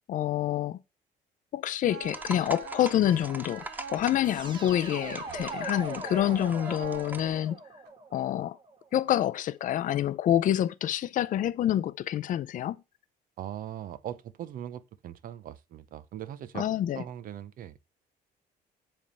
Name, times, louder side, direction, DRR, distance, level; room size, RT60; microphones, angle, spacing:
voice 1, 0.1-0.8 1.5-7.6 8.1-8.6 8.9-12.8 16.5-17.0, left 11 dB, 50° left, 0.5 m, -27 dB
sound 1, 1.9-7.9, right 6 dB, 80° right, 1.5 m, -44 dB
sound 2, 2.0-7.4, right 2 dB, 10° right, 0.5 m, -43 dB
sound 3, 4.2-9.2, right 3 dB, 30° right, 1.3 m, -41 dB
voice 2, 13.4-16.7 16.9-17.8, right 10 dB, 55° right, 0.6 m, -40 dB
7.4 x 3.6 x 5.4 m
cardioid pair, 110°, 17 cm